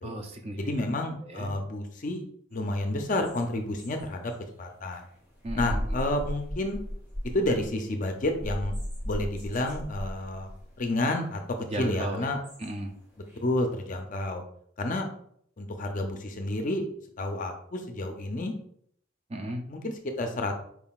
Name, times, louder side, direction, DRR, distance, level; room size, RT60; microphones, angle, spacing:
voice 1, 0.0-0.9 1.2-1.5 5.4-6.0 11.6-12.3 12.6-12.9 19.3-19.6, right 1 dB, 30° right, 3 dB, 0.4 m, -36 dB
voice 2, 0.6-2.2 2.5-4.3 4.6-5.0 5.6-6.8 7.3-8.7 9.1-10.5 10.8-11.4 11.8-12.4 13.4-14.4 14.8-15.1 15.6-16.9 17.2-18.5 19.7-20.5, left 1 dB, 40° left, 5 dB, 0.5 m, -30 dB
sound 1, 2.5-13.9, equal, 10° right, 1.2 m, -38 dB
4.7 x 3.6 x 2.3 m, 0.65 s
head